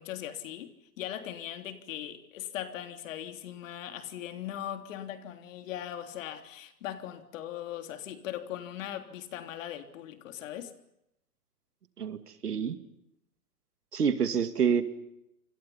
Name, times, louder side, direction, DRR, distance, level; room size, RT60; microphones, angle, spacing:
voice 1, 0.0-10.7, left 11 dB, 55° left, 3.4 m, -39 dB
voice 2, 12.4-12.8 13.9-14.8, right 7 dB, 85° right, 2.5 m, -27 dB
28.5 x 25.0 x 5.7 m
hypercardioid pair, 120°, 45 cm